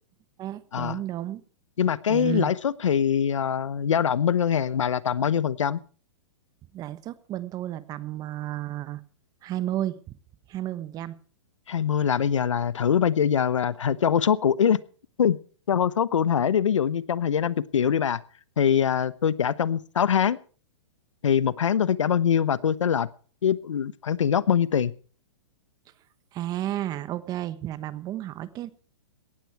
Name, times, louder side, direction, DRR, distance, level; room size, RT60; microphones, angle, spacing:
voice 1, 0.4-1.4 2.1-2.5 6.7-9.0 9.4-10.0 10.5-11.2 26.3-28.7, right 13 dB, 25° right, 15 dB, 1.1 m, -32 dB
voice 2, 1.8-5.8 11.7-14.8 15.2-15.4 15.7-18.2 18.6-20.4 21.2-23.1 23.4-24.9, left 8 dB, 90° left, 18 dB, 0.9 m, -23 dB
17.5 x 13.5 x 4.7 m, 0.40 s
hypercardioid pair, 140°, 16 cm